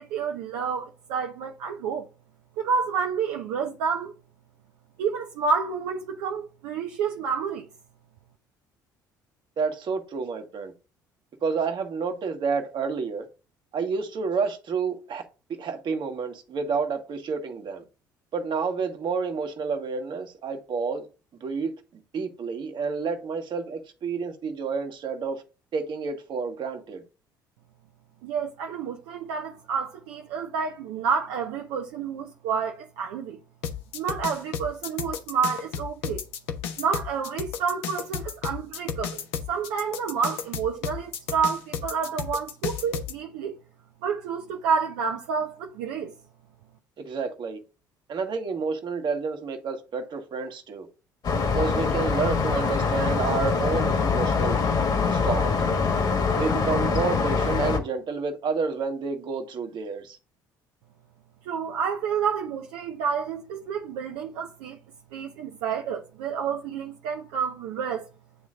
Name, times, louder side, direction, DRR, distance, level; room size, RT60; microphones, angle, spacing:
voice 1, 0.0-2.1 2.6-4.1 5.0-7.7 28.2-33.4 33.9-36.2 36.8-39.2 39.5-43.6 44.0-46.1 61.4-64.8 65.1-68.1, right 6 dB, 70° right, 0.7 m, -29 dB
voice 2, 9.6-10.7 11.4-13.3 13.7-15.2 15.6-17.8 18.3-21.1 21.4-21.7 22.1-25.4 25.7-27.0 47.0-47.6 48.1-50.9 51.5-54.6 55.1-55.6 56.3-60.2, right 5 dB, 50° right, 1.5 m, -29 dB
sound 1, 33.6-43.1, left 8 dB, 65° left, 0.9 m, -33 dB
sound 2, 51.2-57.8, left 5 dB, 40° left, 1.6 m, -24 dB
9.3 x 3.1 x 3.7 m
hypercardioid pair, 55°, 10 cm